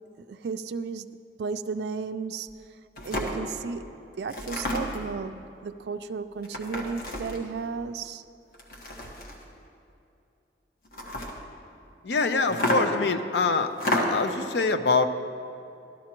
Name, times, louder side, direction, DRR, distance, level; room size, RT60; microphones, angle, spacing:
voice 1, 0.3-1.1 1.4-2.5 3.0-8.2, right 5 dB, 65° right, 9 dB, 0.3 m, -34 dB
sound 1, 2.5-2.6 3.0-3.4 4.3-5.1 6.4-7.5 8.5-9.5 10.8-11.4 12.5-13.1 13.7-14.3, left 1 dB, 55° left, 1.4 m, -30 dB
voice 2, 12.0-15.1, left 4 dB, 75° left, 8 dB, 0.6 m, -25 dB
14.5 x 12.5 x 3.0 m, 2.7 s
head